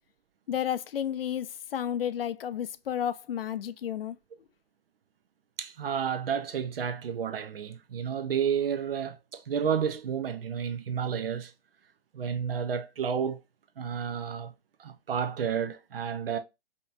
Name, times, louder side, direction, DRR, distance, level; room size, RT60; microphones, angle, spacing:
voice 1, 0.5-4.1, left 9 dB, 65° left, 0.5 m, -32 dB
voice 2, 5.6-11.5 12.1-13.4 13.8-14.5 14.8-16.4, right 7 dB, 65° right, 0.8 m, -31 dB
5.1 x 2.8 x 2.4 m
hypercardioid pair, 150°, 31 cm